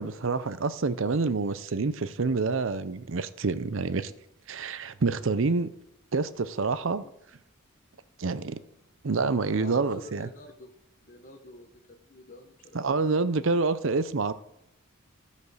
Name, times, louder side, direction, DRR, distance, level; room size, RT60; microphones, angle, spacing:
voice 1, 0.0-4.1 4.5-5.7 6.1-7.0 8.2-8.6 9.0-10.3 12.7-14.3, right 4 dB, 65° right, 0.6 m, -27 dB
voice 2, 9.4-10.7 11.0-12.9, left 1 dB, 40° left, 1.1 m, -48 dB
14.5 x 5.3 x 6.3 m
head